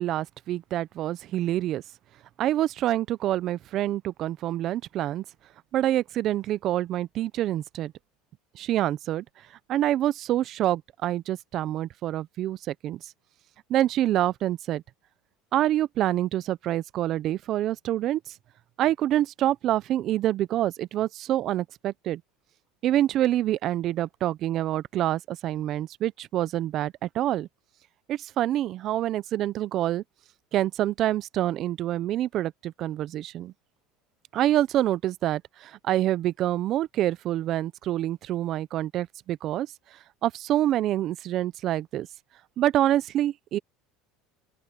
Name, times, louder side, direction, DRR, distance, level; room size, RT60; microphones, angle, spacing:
voice 1, 0.0-1.8 2.4-5.2 5.7-7.9 8.5-9.2 9.7-13.1 13.7-14.8 15.5-18.2 18.8-22.2 22.8-27.5 28.1-30.0 30.5-33.5 34.3-39.7 40.2-42.1 42.6-43.6, right 13 dB, 45° right, 0.6 m, -26 dB
open air
supercardioid pair, 125°, 0 cm